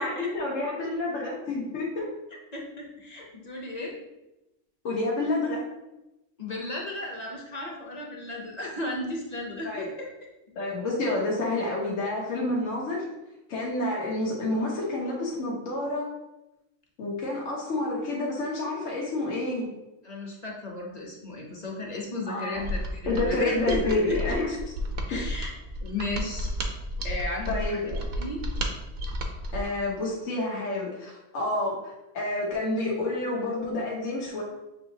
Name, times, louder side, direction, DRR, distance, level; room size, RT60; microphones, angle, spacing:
voice 1, 0.0-2.1 4.8-5.6 9.6-9.9 10.6-13.1 13.5-16.1 17.0-19.7 22.3-22.6 23.1-24.6 27.5-28.0 29.5-34.4, left 2 dB, 90° left, -4 dB, 1.2 m, -29 dB
voice 2, 2.5-4.0 6.4-10.1 20.0-24.2 25.1-25.5 25.8-26.5 27.0-27.8 28.2-28.4, left 2 dB, 40° left, -1 dB, 0.8 m, -34 dB
Mechanisms, 22.6-29.8, equal, 55° right, 0.7 m, -32 dB
7.1 x 2.8 x 2.7 m, 0.97 s
omnidirectional pair, 1.3 m